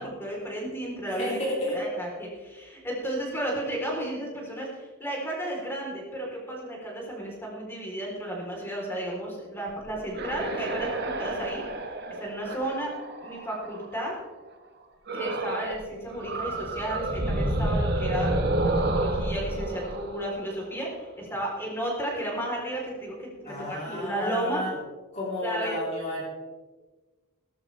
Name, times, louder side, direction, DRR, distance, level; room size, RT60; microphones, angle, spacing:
voice 1, 0.0-1.4 1.7-10.9 11.2-11.6 12.2-13.0 13.2-14.1 15.1-18.3 18.6-24.6 25.4-25.8, right 1 dB, 10° left, -3 dB, 3.6 m, -33 dB
voice 2, 1.2-1.8 23.4-24.7 25.1-26.2, left 1 dB, 30° left, -4 dB, 3.5 m, -31 dB
sound 1, 9.8-14.0 15.1-15.8 16.1-21.0, right 1 dB, 45° right, 1.4 m, -30 dB
17.5 x 13.0 x 3.4 m, 1.3 s
head